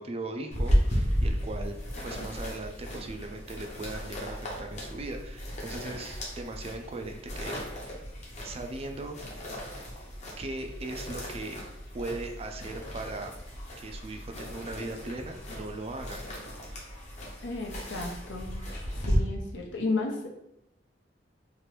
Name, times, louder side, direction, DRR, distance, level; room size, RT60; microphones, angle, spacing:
voice 1, 0.0-1.8 2.0-8.0 8.4-9.2 10.4-11.6 11.9-13.4 13.8-16.3, right 2 dB, 35° right, 4 dB, 0.3 m, -39 dB
sound 1, 0.5-19.2, equal, 40° left, 0.8 m, -34 dB
voice 2, 17.4-18.6 19.0-20.3, left 3 dB, 80° left, 1 dB, 0.6 m, -33 dB
3.0 x 2.5 x 3.2 m, 0.82 s
head